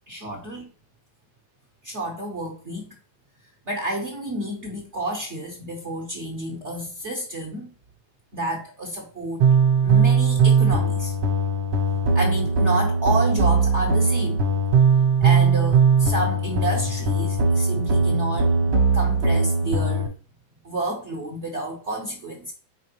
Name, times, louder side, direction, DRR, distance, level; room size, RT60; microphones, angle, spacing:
voice 1, 0.1-0.7 1.8-2.8 3.7-7.7 8.3-9.4 9.8-11.1 12.1-14.4 15.2-20.1 20.6-22.5, right 1 dB, 50° right, 0 dB, 0.9 m, -30 dB
sound 1, 9.4-20.1, right 4 dB, 65° right, 1.5 m, -20 dB
5.0 x 3.6 x 2.9 m, 0.40 s
omnidirectional pair, 2.1 m